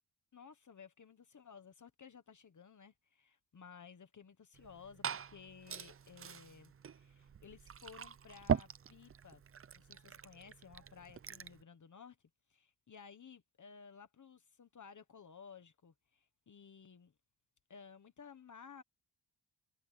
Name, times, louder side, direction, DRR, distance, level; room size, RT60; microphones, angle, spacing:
voice 1, 0.3-9.4 9.7-12.2 12.5-17.1 17.7-18.8, left 6 dB, 40° left, 1.3 m, -56 dB
Liquid, 4.5-11.6, right 7 dB, 30° right, 0.5 m, -42 dB
wide cardioid pair, 165°, 45 cm